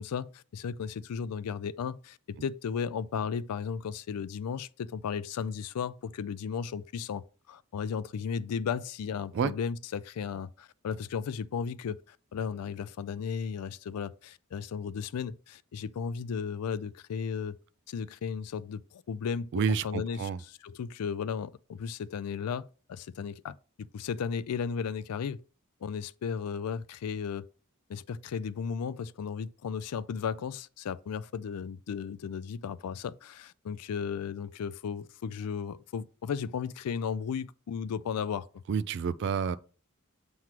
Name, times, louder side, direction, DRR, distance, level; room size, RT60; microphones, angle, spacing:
voice 1, 0.0-17.6 17.9-19.5 19.8-20.3 20.6-23.6 23.9-25.4 25.8-27.5 27.9-38.5, left 6 dB, 90° left, 0.4 m, -35 dB
voice 2, 19.5-20.4 38.7-39.6, right 6 dB, 50° right, 0.3 m, -29 dB
7.5 x 3.1 x 5.8 m
head